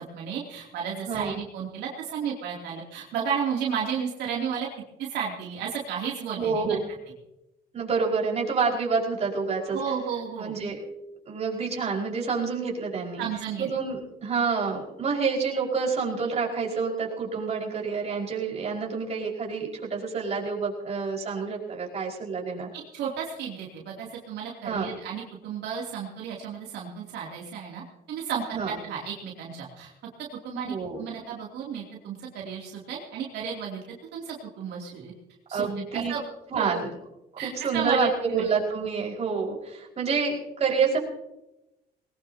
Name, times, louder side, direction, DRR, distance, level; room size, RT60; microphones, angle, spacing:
voice 1, 0.0-4.7 5.0-6.8 9.7-10.5 13.2-13.7 22.7-29.9 30.4-33.8 34.1-35.1 35.5-36.2 36.5-36.8 37.4-38.4, right 7 dB, 80° right, -3 dB, 2.9 m, -33 dB
voice 2, 6.4-6.9 7.7-9.8 10.4-10.8 11.3-13.2 13.6-22.7 24.6-25.0 28.5-28.7 30.7-31.1 35.5-36.1 36.5-36.9 37.4-41.0, right 5 dB, 40° right, -2 dB, 5.2 m, -28 dB
20.5 x 19.0 x 2.9 m, 0.91 s
cardioid pair, 110°, 17 cm